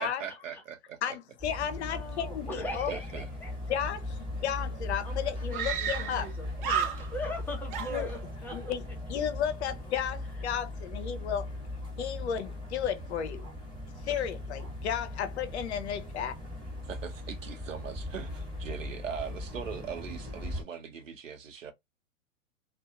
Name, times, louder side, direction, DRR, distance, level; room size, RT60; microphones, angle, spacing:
voice 1, 0.0-1.2 2.9-3.3 14.1-14.2 16.8-21.7, right 7 dB, 75° right, 1.0 m, -40 dB
voice 2, 1.0-2.9 3.7-6.3 7.9-8.1 8.5-11.5 12.0-13.5 14.0-16.3, left 9 dB, 60° left, 0.8 m, -33 dB
sound 1, 1.4-20.6, left 1 dB, 10° right, 1.5 m, -39 dB
voice 3, 1.6-3.8 5.0-8.7, left 1 dB, 5° left, 0.8 m, -41 dB
Screaming, 4.4-4.5 4.7-4.8 5.5-6.3 6.6-7.4 7.7-8.6, right 7 dB, 40° right, 0.7 m, -33 dB
2.8 x 2.4 x 2.3 m
hypercardioid pair, 120°, 38 cm